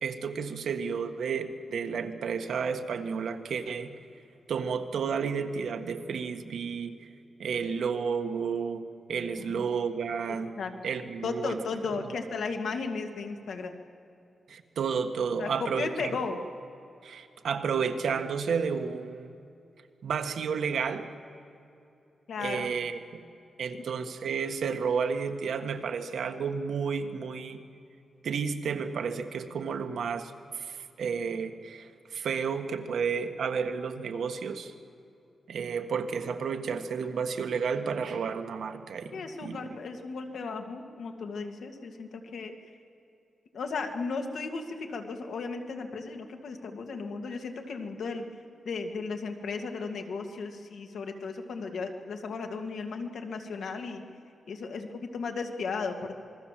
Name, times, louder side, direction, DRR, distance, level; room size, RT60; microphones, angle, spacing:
voice 1, 0.0-3.9 4.5-6.9 7.4-8.8 9.1-10.5 10.8-11.6 11.9-12.1 14.5-16.2 17.0-19.3 20.0-21.1 22.4-23.2 23.6-27.6 28.2-34.7 35.5-39.1 39.4-39.8, right 6 dB, 75° right, 7 dB, 1.5 m, -31 dB
voice 2, 9.4-9.7 10.3-10.7 11.2-13.8 15.4-16.4 22.3-22.7 39.1-42.5 43.5-48.3 48.6-54.0 54.5-56.1, left 4 dB, 75° left, 4 dB, 2.2 m, -35 dB
27.0 x 21.0 x 7.6 m, 2.8 s
wide cardioid pair, 165°, 0 cm